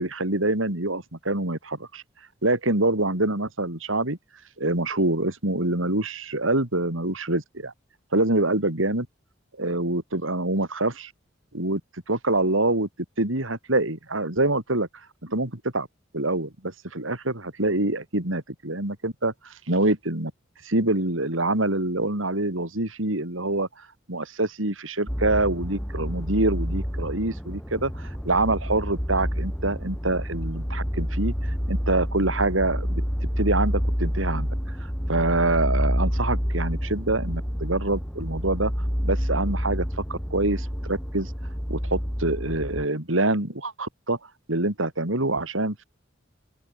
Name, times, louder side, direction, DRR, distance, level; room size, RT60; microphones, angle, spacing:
voice 1, 0.0-2.0 2.4-4.2 4.6-7.7 8.1-9.1 9.6-11.1 11.5-11.8 12.1-12.9 13.2-14.9 15.2-15.9 16.1-20.3 20.6-23.7 24.1-33.0 33.4-34.5 35.1-38.7 39.0-41.3 41.7-44.2 44.5-45.8, right 2 dB, 90° right, 4.5 m, -25 dB
sound 1, 25.1-42.8, equal, 5° left, 7.2 m, -28 dB
open air
head